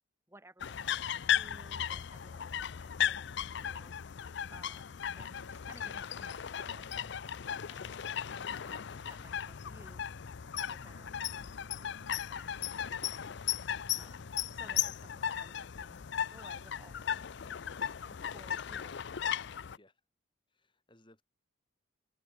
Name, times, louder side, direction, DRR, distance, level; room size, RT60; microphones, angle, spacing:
voice 1, 0.3-3.9 4.5-7.1 7.4-10.0 10.5-13.4 14.0-19.0, right 1 dB, 15° right, 2.6 m, -59 dB
sound 1, 0.6-19.8, left 9 dB, 60° left, 0.5 m, -36 dB
sound 2, 5.1-15.4, left 1 dB, 80° left, 2.7 m, -56 dB
voice 2, 20.5-21.2, left 1 dB, 25° left, 3.3 m, -63 dB
open air
head